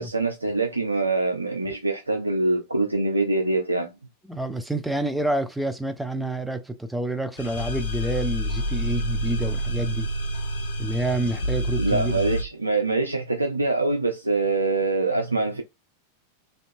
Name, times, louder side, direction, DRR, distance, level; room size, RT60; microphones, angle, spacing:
voice 1, 0.0-3.9 11.8-15.6, right 3 dB, 80° right, 0.4 m, -24 dB
voice 2, 4.3-10.1 10.8-12.2, right 1 dB, 5° right, 0.4 m, -28 dB
sound 1, 7.4-12.4, equal, 60° left, 0.5 m, -28 dB
2.6 x 2.2 x 2.6 m
figure-of-eight pair, 90°, 0 cm